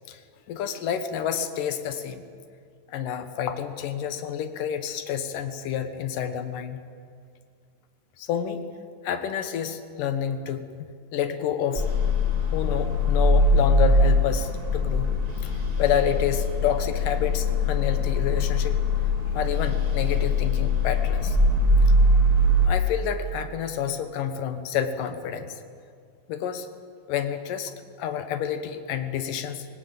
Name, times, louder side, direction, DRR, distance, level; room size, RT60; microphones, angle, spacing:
voice 1, 0.5-2.3 2.9-6.9 8.2-8.6 9.0-10.7 11.1-12.2 12.4-18.8 19.3-21.4 21.8-21.9 22.6-25.6 26.3-26.7 27.1-29.7, left 8 dB, 70° left, 9 dB, 2.1 m, -29 dB
sound 1, 11.7-22.7, left 1 dB, 15° right, 1.3 m, -22 dB
23.5 x 19.0 x 8.9 m, 2.2 s
omnidirectional pair, 5.3 m